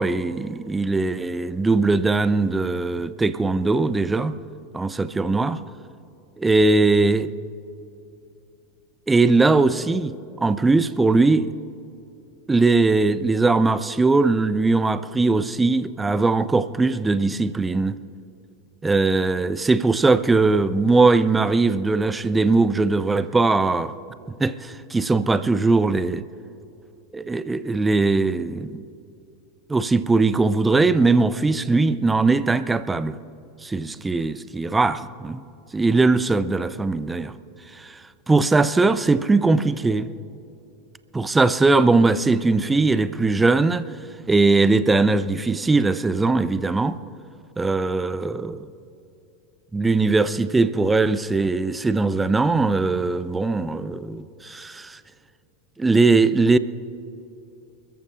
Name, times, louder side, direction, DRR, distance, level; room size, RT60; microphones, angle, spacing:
voice 1, 0.0-4.3 4.7-5.6 6.4-7.3 9.1-10.1 10.4-11.5 12.5-18.0 18.8-23.9 24.4-26.2 27.1-28.8 29.7-33.2 33.6-35.4 35.7-37.3 37.7-38.0 38.3-40.1 41.1-43.8 44.3-47.0 47.6-48.7 49.7-55.0 55.8-56.6, right 3 dB, 10° right, 0.6 m, -20 dB
29.0 x 14.0 x 2.5 m
figure-of-eight pair, 85°, 0 cm